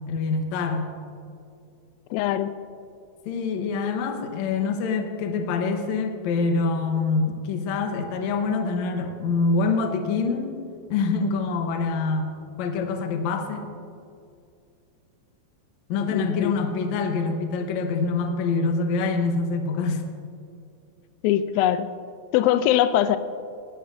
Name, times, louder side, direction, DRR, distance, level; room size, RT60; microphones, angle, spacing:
voice 1, 0.1-0.9 3.3-10.5 10.9-12.3 12.6-13.7 15.9-20.0, left 4 dB, 70° left, 5 dB, 1.9 m, -25 dB
voice 2, 2.1-2.5 16.1-16.5 21.2-21.9 22.3-23.2, left 12 dB, 90° left, 12 dB, 2.4 m, -21 dB
20.0 x 12.0 x 2.6 m, 2.4 s
omnidirectional pair, 4.1 m